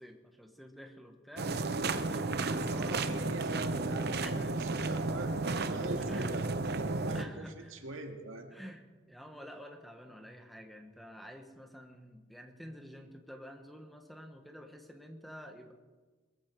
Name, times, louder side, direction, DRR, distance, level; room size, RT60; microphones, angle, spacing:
voice 1, 0.0-3.4 4.2-4.6 6.1-6.4 7.1-7.8 8.5-15.7, equal, ahead, 5 dB, 1.3 m, -49 dB
sound 1, 1.4-7.2, right 3 dB, 50° right, 0.8 m, -33 dB
voice 2, 2.7-4.2 4.6-8.5, right 2 dB, 90° right, 4 dB, 2.0 m, -43 dB
22.0 x 14.5 x 4.6 m, 1.3 s
head